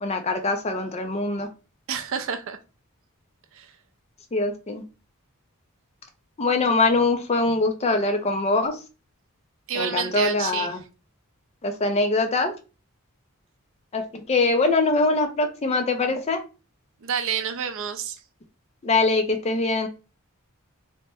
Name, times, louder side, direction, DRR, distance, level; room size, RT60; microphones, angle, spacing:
voice 1, 0.0-1.5 4.3-4.8 6.4-8.8 9.8-10.8 11.6-12.5 13.9-16.4 18.8-19.9, left 3 dB, 30° left, 0.5 m, -23 dB
voice 2, 1.9-2.6 3.5-3.7 9.7-10.8 17.0-18.2, right 7 dB, 60° right, 0.4 m, -29 dB
2.8 x 2.1 x 3.3 m
head